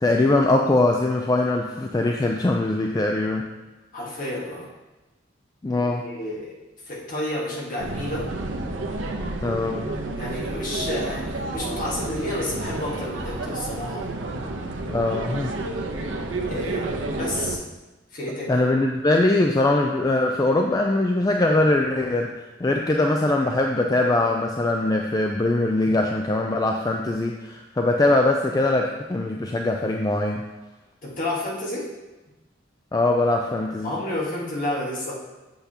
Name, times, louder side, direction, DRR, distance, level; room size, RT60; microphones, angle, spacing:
voice 1, 0.0-3.4 5.6-6.1 9.4-9.8 14.9-15.5 18.5-22.3 22.6-30.4 32.9-33.9, left 2 dB, 20° left, 2 dB, 0.4 m, -22 dB
voice 2, 3.9-4.7 6.0-6.5 6.8-8.3 10.2-14.1 16.5-17.6 18.1-18.6 25.9-26.0 31.0-31.9 33.8-35.1, left 1 dB, 45° left, -3 dB, 1.6 m, -30 dB
sound 1, 7.8-17.6, right 2 dB, 90° right, 0.7 m, -30 dB
8.0 x 6.7 x 2.8 m, 1.1 s
head